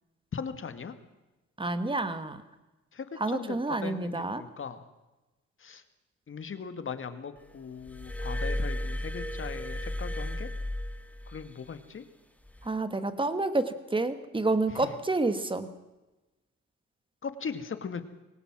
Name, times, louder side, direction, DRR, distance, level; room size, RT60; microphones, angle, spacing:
voice 1, 0.3-0.9 2.9-4.8 5.6-5.8 6.3-10.5 11.3-12.0 14.7-14.9 17.2-18.0, left 6 dB, 40° left, 10 dB, 2.1 m, -39 dB
voice 2, 1.6-2.4 3.2-4.4 12.7-15.7, right 2 dB, 15° right, 11 dB, 2.0 m, -29 dB
Glass, 7.9-11.5 12.5-12.7, left 1 dB, 5° left, 2.2 m, -34 dB
22.5 x 18.5 x 6.2 m, 1.1 s
cardioid pair, 90°, 30 cm